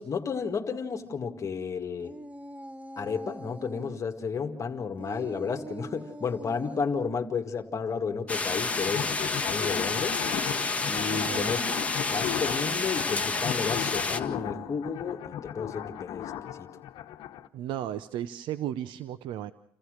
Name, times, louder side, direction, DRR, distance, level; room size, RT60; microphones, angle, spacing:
voice 1, 0.0-2.1 3.0-10.2 10.9-11.6 12.0-16.7, left 5 dB, 40° left, 4 dB, 2.1 m, -32 dB
sound 1, 2.0-4.0 5.0-6.9 10.7-13.0, right 2 dB, 15° right, 1.1 m, -44 dB
sound 2, 8.3-14.2, left 3 dB, 15° left, 1.8 m, -29 dB
sound 3, 8.6-17.5, left 11 dB, 75° left, 1.2 m, -36 dB
voice 2, 17.5-19.5, right 11 dB, 75° right, 14 dB, 0.7 m, -34 dB
28.5 x 14.5 x 6.6 m, 0.70 s
cardioid pair, 95°, 8 cm